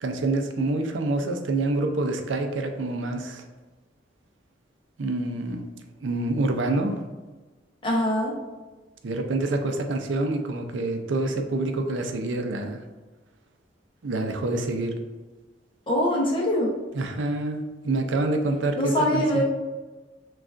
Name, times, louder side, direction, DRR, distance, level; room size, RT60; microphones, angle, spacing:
voice 1, 0.0-3.4 5.0-5.6 6.0-7.0 9.0-12.8 14.0-14.9 16.9-19.4, right 2 dB, 85° right, 5 dB, 0.5 m, -27 dB
voice 2, 7.8-8.3 15.9-16.7 18.8-19.4, equal, 30° left, -2 dB, 0.7 m, -23 dB
6.1 x 2.4 x 2.4 m, 1.2 s
head